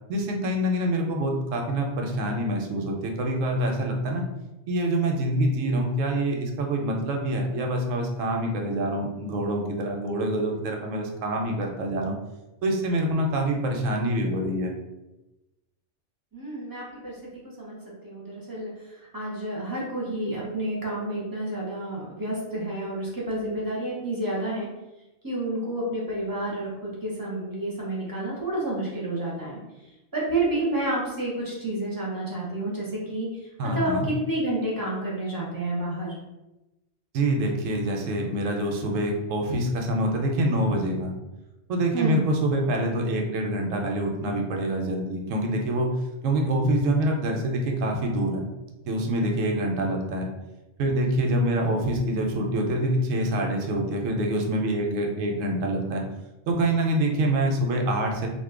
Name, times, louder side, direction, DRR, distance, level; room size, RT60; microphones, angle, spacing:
voice 1, 0.1-4.2 4.7-12.2 12.6-14.7 33.6-34.1 37.1-41.1 41.7-45.9 46.2-48.5 48.9-50.3 50.8-56.0 56.5-58.3, right 1 dB, 85° right, 1 dB, 1.0 m, -26 dB
voice 2, 16.3-17.8 18.0-18.7 19.1-24.7 25.2-29.6 30.1-33.3 33.6-36.1 41.9-42.2, right 1 dB, 25° right, -5 dB, 0.5 m, -29 dB
2.6 x 2.2 x 3.6 m, 1.0 s
omnidirectional pair, 1.3 m